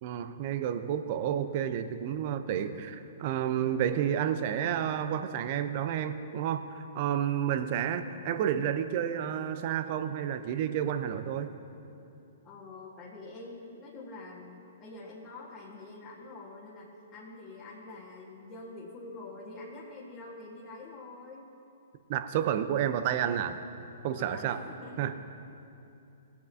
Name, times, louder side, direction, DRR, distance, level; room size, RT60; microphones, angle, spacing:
voice 1, 0.0-11.5 22.1-23.6 24.0-24.6 25.0-25.1, right 9 dB, 45° right, 10 dB, 0.6 m, -30 dB
voice 2, 12.4-21.5 24.1-25.1, left 2 dB, 25° left, -6 dB, 1.6 m, -46 dB
18.0 x 8.3 x 2.8 m, 2.8 s
hypercardioid pair, 125°, 0 cm